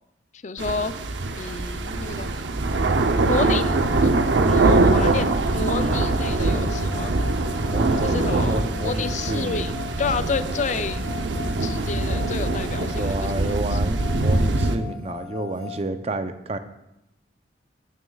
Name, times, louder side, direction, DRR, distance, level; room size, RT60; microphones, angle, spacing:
voice 1, 0.3-0.9 1.4-2.4 3.3-3.8 4.0-4.2 4.5-5.3 5.5-7.2 8.0-8.6 8.8-9.7 10.0-11.0 11.6-13.8, left 4 dB, 40° left, 12 dB, 0.4 m, -29 dB
sound 1, 0.6-14.8, right 2 dB, 85° right, 0.7 m, -23 dB
sound 2, 3.3-15.8, left 8 dB, 25° left, 1.6 m, -39 dB
voice 2, 7.7-9.7 12.9-16.6, right 2 dB, 35° right, 9 dB, 0.5 m, -29 dB
12.5 x 9.6 x 2.3 m, 0.88 s
head